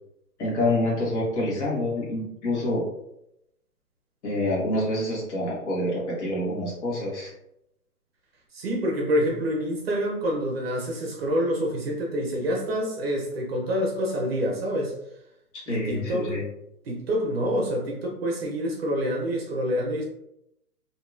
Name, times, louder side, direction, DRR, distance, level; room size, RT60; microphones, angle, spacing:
voice 1, 0.4-2.8 4.2-7.3 15.7-16.4, left 1 dB, 45° left, -4 dB, 1.3 m, -27 dB
voice 2, 8.5-14.9 15.7-16.3 16.9-20.0, equal, 40° right, 0 dB, 0.6 m, -27 dB
2.8 x 2.7 x 2.4 m, 0.81 s
hypercardioid pair, 140°, 47 cm